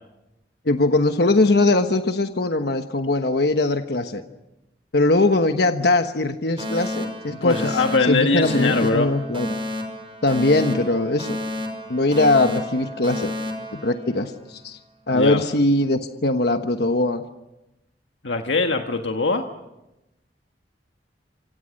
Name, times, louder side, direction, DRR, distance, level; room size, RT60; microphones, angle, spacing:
voice 1, 0.6-4.2 4.9-7.8 8.1-9.5 10.2-11.4 11.9-13.3 13.7-14.8 15.1-17.2, left 2 dB, 60° left, 7 dB, 1.2 m, -21 dB
Alarm, 6.6-14.6, left 1 dB, 30° right, 5.0 m, -31 dB
voice 2, 7.4-9.1 15.1-15.4 18.2-19.4, left 3 dB, 85° left, 4 dB, 1.5 m, -21 dB
28.0 x 26.5 x 6.5 m, 0.95 s
head